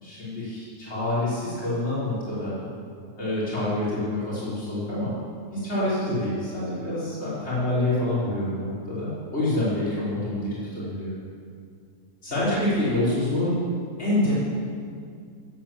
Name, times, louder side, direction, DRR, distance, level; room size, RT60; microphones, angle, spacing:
voice 1, 0.0-2.6 3.2-5.1 5.5-11.2 12.2-13.6 14.0-14.3, left 1 dB, 45° left, -10 dB, 5.2 m, -27 dB
15.5 x 8.6 x 7.4 m, 2.2 s
omnidirectional pair, 1.6 m